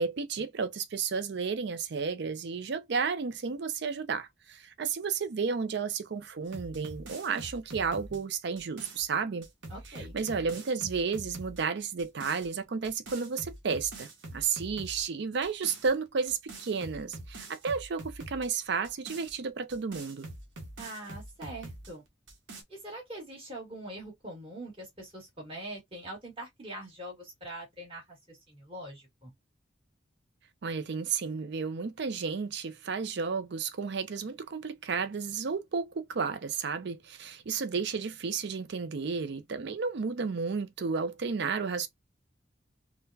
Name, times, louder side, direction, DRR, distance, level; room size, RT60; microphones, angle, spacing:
voice 1, 0.0-9.5 10.1-20.3 30.6-41.9, right 5 dB, 60° right, 0.5 m, -32 dB
sound 1, 6.5-9.1 9.4-11.6 12.0-12.5 12.8-15.1 15.4-15.9 16.3-18.5 18.8-21.9 22.3-22.6, right 2 dB, 75° right, 1.0 m, -45 dB
voice 2, 9.7-10.2 20.8-22.0 22.7-29.3, right 1 dB, 30° right, 1.8 m, -43 dB
3.8 x 2.2 x 2.7 m
head